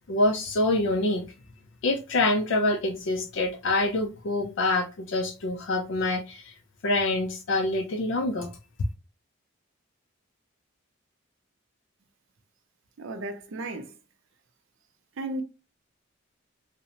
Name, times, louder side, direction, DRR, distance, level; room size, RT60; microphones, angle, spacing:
voice 1, 0.1-1.3 1.8-6.5 6.8-8.5, left 2 dB, 60° left, 0.4 m, -26 dB
voice 2, 13.0-14.0 15.2-15.4, right 2 dB, 70° right, 0.5 m, -34 dB
2.7 x 2.0 x 2.8 m
head